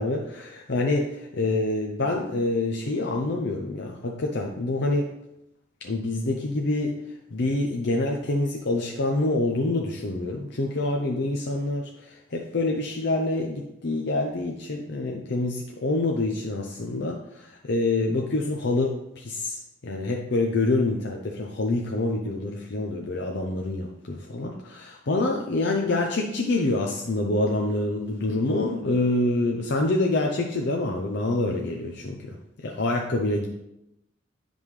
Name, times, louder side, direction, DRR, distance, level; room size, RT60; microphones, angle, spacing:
voice 1, 0.0-5.1 5.8-7.0 7.3-33.5, left 2 dB, 60° left, 1 dB, 0.7 m, -26 dB
9.2 x 5.3 x 3.3 m, 0.86 s
head